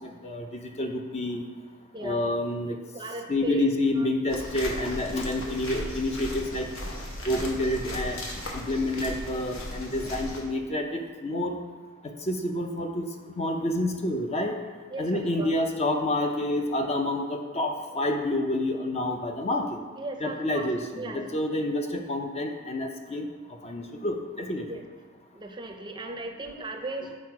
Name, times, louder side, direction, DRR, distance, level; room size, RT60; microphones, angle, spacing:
voice 1, 0.0-1.4 2.0-2.8 3.3-6.7 7.3-8.2 8.5-11.6 12.3-13.1 13.3-14.6 15.0-19.8 20.2-23.3 23.6-24.8, left 1 dB, 30° left, 3 dB, 0.5 m, -28 dB
voice 2, 2.9-3.7 4.0-4.1 14.9-15.6 20.0-21.2 24.7-24.8 25.3-27.1, right 2 dB, 20° right, 3 dB, 0.5 m, -37 dB
sound 1, 4.3-10.4, left 1 dB, 65° left, 1.1 m, -36 dB
6.3 x 4.2 x 4.7 m, 1.4 s
head